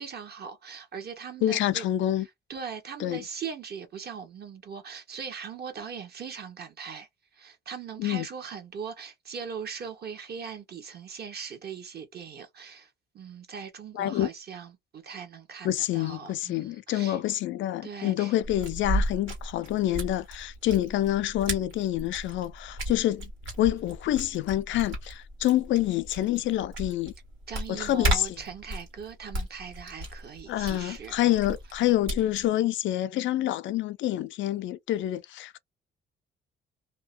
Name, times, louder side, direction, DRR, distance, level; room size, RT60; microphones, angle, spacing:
voice 1, 0.0-1.9 2.5-7.1 7.3-12.9 13.1-17.2 17.8-18.3 27.5-31.4, right 6 dB, 55° right, 1.0 m, -40 dB
voice 2, 1.4-2.3 3.0-3.2 8.0-8.3 13.9-14.3 15.6-23.3 23.6-27.1 27.7-28.4 30.5-35.6, left 13 dB, 70° left, 0.4 m, -27 dB
sound 1, 18.4-32.5, equal, 85° right, 1.7 m, -35 dB
2.7 x 2.2 x 2.5 m
cardioid pair, 90°, 20 cm